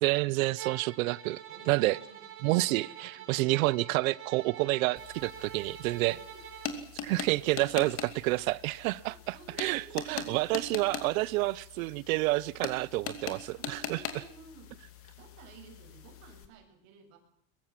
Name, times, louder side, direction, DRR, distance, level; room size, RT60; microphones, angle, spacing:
voice 1, 0.0-1.4 1.7-2.0 2.4-6.2 7.0-9.8 10.1-14.0, right 20 dB, 85° right, 0.9 m, -29 dB
Bowed string instrument, 0.6-6.8, right 9 dB, 30° right, 5.0 m, -46 dB
voice 2, 1.5-2.3 3.1-3.6 6.1-6.5 9.1-10.5 13.6-14.8 15.2-17.2, right 5 dB, 60° right, 7.3 m, -53 dB
sound 1, 5.0-16.5, left 7 dB, 35° left, 2.7 m, -42 dB
22.5 x 22.0 x 7.6 m
cardioid pair, 165°, 40 cm